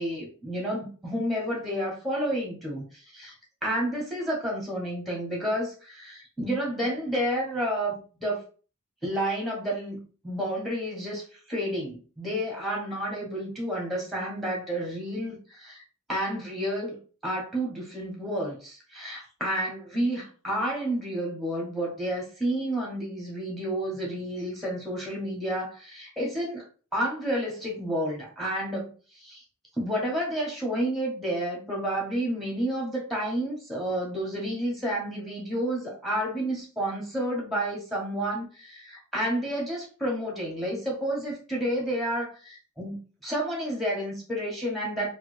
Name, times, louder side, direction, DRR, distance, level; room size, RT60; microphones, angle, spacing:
voice 1, 0.0-3.3 3.6-8.4 9.0-15.8 16.1-26.7 26.9-29.4 29.8-45.1, right 1 dB, ahead, -2 dB, 1.1 m, -30 dB
3.2 x 2.3 x 3.2 m, 0.37 s
head